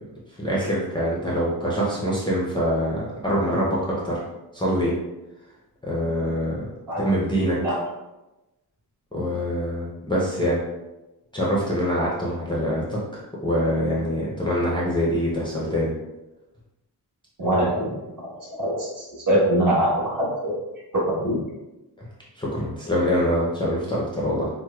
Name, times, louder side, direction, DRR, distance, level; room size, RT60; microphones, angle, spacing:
voice 1, 0.4-4.2 4.5-4.9 5.8-6.6 7.0-7.6 9.1-10.6 11.3-13.0 13.4-15.9 22.4-24.5, equal, 15° left, -7 dB, 0.5 m, -24 dB
voice 2, 17.4-17.9 18.6-20.5 20.9-21.4, right 1 dB, 55° right, -7 dB, 1.4 m, -22 dB
4.6 x 2.0 x 2.2 m, 1.0 s
wide cardioid pair, 180°, 39 cm